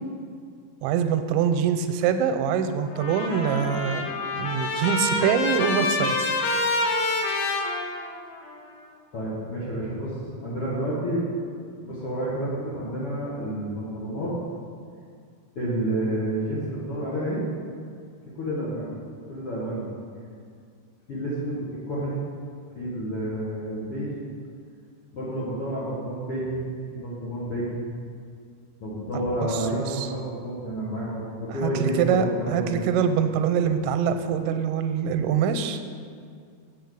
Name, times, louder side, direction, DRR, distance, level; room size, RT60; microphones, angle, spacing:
voice 1, 0.8-4.1 4.3-6.3 29.4-30.1 31.6-35.8, right 7 dB, 90° right, 8 dB, 2.9 m, -24 dB
Trumpet, 2.9-8.5, left 2 dB, 75° left, 2.4 m, -27 dB
voice 2, 9.1-10.2 10.4-11.3 11.8-14.3 15.6-17.4 18.3-18.9 19.3-19.9 21.1-22.2 22.7-24.1 25.1-26.6 26.9-27.8 28.8-32.8, right 1 dB, 55° left, -8 dB, 1.6 m, -29 dB
8.4 x 6.3 x 8.3 m, 2.2 s
omnidirectional pair, 5.1 m